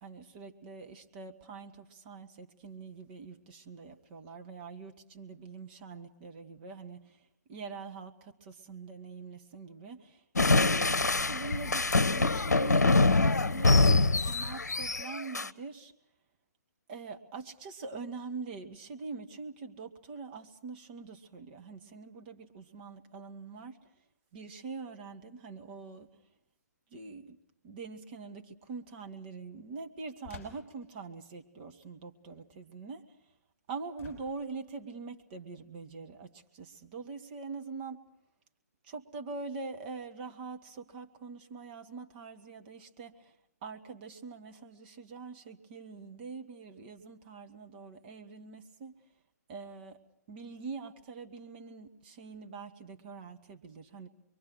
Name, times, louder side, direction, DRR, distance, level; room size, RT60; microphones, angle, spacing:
voice 1, 0.0-7.2 7.5-15.9 16.9-23.9 24.3-26.1 26.9-27.4 27.6-33.0 33.7-38.1 38.8-43.3 43.6-49.0 49.5-50.0 50.3-54.1, right 4 dB, 35° right, 6 dB, 1.7 m, -44 dB
sound 1, 10.4-15.5, left 3 dB, 75° left, 0.8 m, -25 dB
sound 2, 30.2-30.9 34.0-34.7, left 7 dB, 15° left, 5.7 m, -50 dB
26.0 x 23.0 x 6.5 m, 0.77 s
figure-of-eight pair, 130°, 9 cm